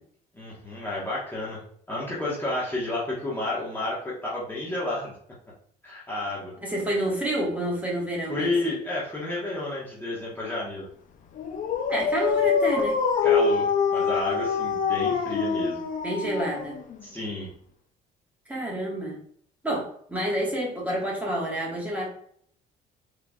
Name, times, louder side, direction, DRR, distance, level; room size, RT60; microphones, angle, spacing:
voice 1, 0.3-1.6 1.9-5.1 5.8-6.6 8.3-10.9 13.2-15.8 17.0-17.5, left 2 dB, 10° left, -7 dB, 1.1 m, -31 dB
voice 2, 6.6-8.5 11.9-13.0 16.0-16.8 18.5-19.2 19.6-22.1, right 1 dB, 10° right, -4 dB, 1.4 m, -28 dB
Dog, 11.4-17.0, left 6 dB, 50° left, 0.5 m, -25 dB
3.8 x 3.2 x 2.3 m, 0.62 s
cardioid pair, 110°, 17 cm